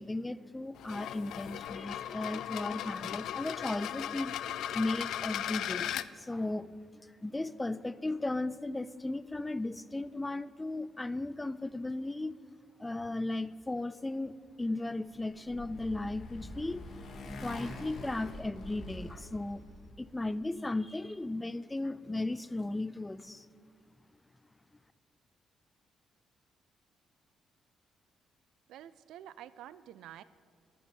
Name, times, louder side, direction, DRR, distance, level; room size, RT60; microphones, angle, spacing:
voice 1, 0.0-4.4 4.7-12.4 12.8-16.9 17.4-19.7 20.0-23.5, left 2 dB, 15° left, 17 dB, 0.4 m, -36 dB
sound 1, 0.8-6.1, left 11 dB, 80° left, 0.4 m, -37 dB
Motorcycle, 15.0-20.0, left 1 dB, 60° left, 2.0 m, -45 dB
voice 2, 28.7-30.2, right 11 dB, 85° right, 16 dB, 0.3 m, -49 dB
11.0 x 8.4 x 8.6 m, 2.2 s
cardioid pair, 90°, 0 cm